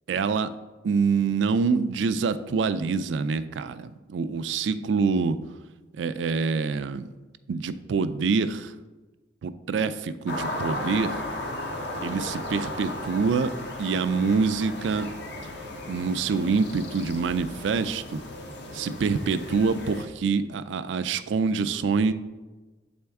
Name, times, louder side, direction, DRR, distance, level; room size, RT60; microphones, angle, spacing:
voice 1, 0.1-0.5 0.8-5.4 6.0-7.1 7.5-8.7 9.4-11.2 12.0-15.1 15.9-18.2 18.7-22.1, right 5 dB, 75° right, 12 dB, 0.4 m, -26 dB
sound 1, 10.3-20.0, left 1 dB, 65° left, 0.8 m, -35 dB
7.6 x 4.3 x 3.5 m, 1.2 s
head